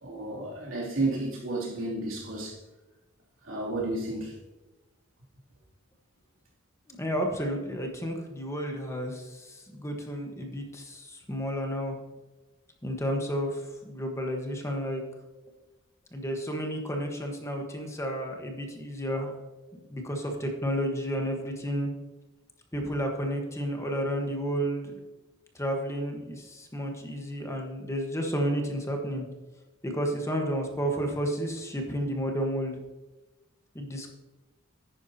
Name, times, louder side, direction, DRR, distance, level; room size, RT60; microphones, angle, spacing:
voice 1, 0.0-2.6 3.4-4.4, right 2 dB, 85° right, 2.9 m, -32 dB
voice 2, 6.9-12.0 12.8-15.0 16.1-19.3 19.9-21.9 22.7-24.9 25.5-29.2 29.8-32.8 33.7-34.1, equal, 15° left, 1.3 m, -31 dB
11.0 x 9.4 x 2.8 m
head